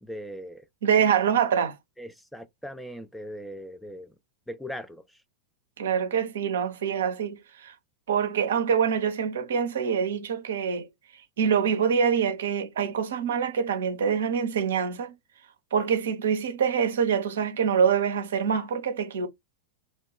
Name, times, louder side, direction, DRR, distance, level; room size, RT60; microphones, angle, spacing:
voice 1, 0.0-0.6 2.0-4.1 4.5-5.0, equal, 5° left, 0.4 m, -39 dB
voice 2, 0.8-1.8 5.8-7.7 8.1-10.9 11.4-15.1 15.7-19.3, right 7 dB, 60° right, 0.5 m, -25 dB
2.9 x 2.2 x 2.8 m
figure-of-eight pair, 90°, 0 cm